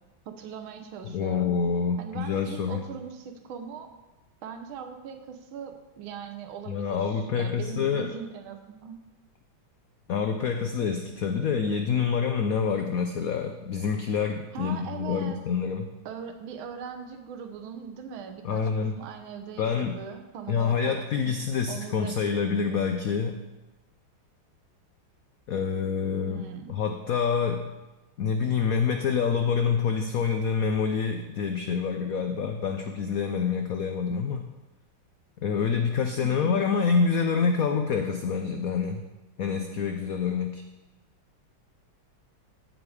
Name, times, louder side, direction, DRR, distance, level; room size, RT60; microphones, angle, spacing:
voice 1, 0.3-1.6 2.0-3.9 4.4-9.0 14.5-15.4 16.0-20.9 21.2-21.3 21.7-22.3 26.3-26.8 36.2-36.6, right 7 dB, 75° right, 5 dB, 1.7 m, -40 dB
voice 2, 1.0-2.8 6.7-8.1 10.1-15.9 18.4-18.9 19.6-20.0 20.5-23.4 25.5-26.4 26.7-27.7 28.2-34.5 35.4-39.1 39.4-40.6, left 6 dB, 90° left, 6 dB, 0.7 m, -27 dB
15.0 x 5.1 x 4.9 m, 1.1 s
omnidirectional pair, 2.3 m